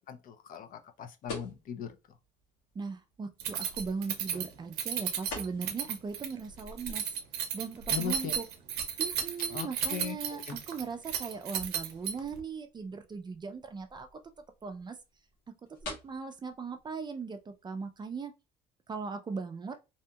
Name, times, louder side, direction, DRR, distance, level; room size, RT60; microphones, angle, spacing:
voice 1, 0.1-1.9 7.9-8.3 9.5-10.6, left 8 dB, 55° left, 0.5 m, -39 dB
sound 1, 1.2-18.2, left 3 dB, 85° left, 1.3 m, -51 dB
voice 2, 2.7-7.1 7.5-8.5 9.0-14.1 14.6-15.0 15.8-18.3 18.9-19.8, right 5 dB, 25° right, 0.4 m, -39 dB
Keys jangling, 3.4-12.4, right 8 dB, 80° right, 0.6 m, -34 dB
2.7 x 2.7 x 2.2 m
cardioid pair, 110°, 17 cm